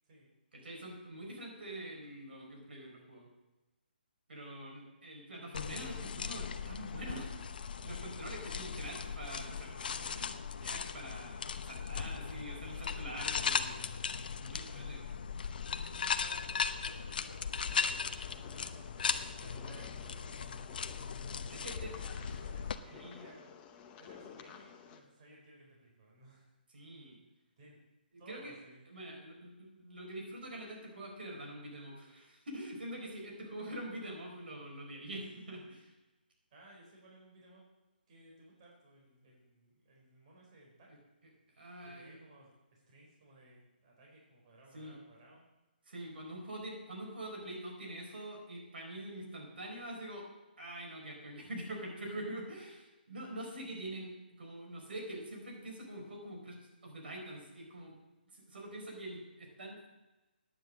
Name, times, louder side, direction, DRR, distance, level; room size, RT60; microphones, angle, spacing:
voice 1, 0.5-3.3 4.3-11.4 11.6-13.9 14.4-15.0 21.5-21.9 22.9-23.2 26.7-27.2 28.3-28.5 28.9-35.9 41.6-42.2 44.7-44.9 45.9-50.3 50.6-58.0 58.3-59.9, right 1 dB, 75° right, 1 dB, 4.7 m, -45 dB
sound 1, 5.5-22.8, left 6 dB, 60° left, 0.7 m, -38 dB
voice 2, 16.0-18.2 18.5-20.5 21.5-26.5 27.6-27.8 28.2-29.0 36.5-37.6 38.1-40.9 41.8-45.4, right 1 dB, 35° right, -2 dB, 4.5 m, -59 dB
sound 2, 17.6-25.0, left 7 dB, 20° left, 0.9 m, -54 dB
9.9 x 9.2 x 7.5 m, 1.1 s
hypercardioid pair, 160°, 6 cm